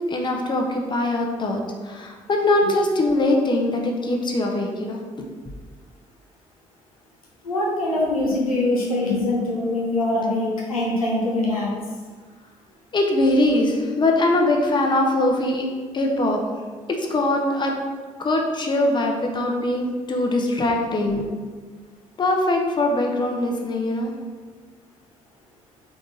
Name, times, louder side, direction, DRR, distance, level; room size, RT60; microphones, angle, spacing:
voice 1, 0.1-5.0 12.9-15.7 15.9-16.4 16.9-17.7 18.2-21.2 22.2-24.1, left 1 dB, 25° left, 1 dB, 0.6 m, -22 dB
voice 2, 7.4-11.7, left 2 dB, 85° left, -4 dB, 0.6 m, -23 dB
3.6 x 3.0 x 3.7 m, 1.5 s
figure-of-eight pair, 45°, 18 cm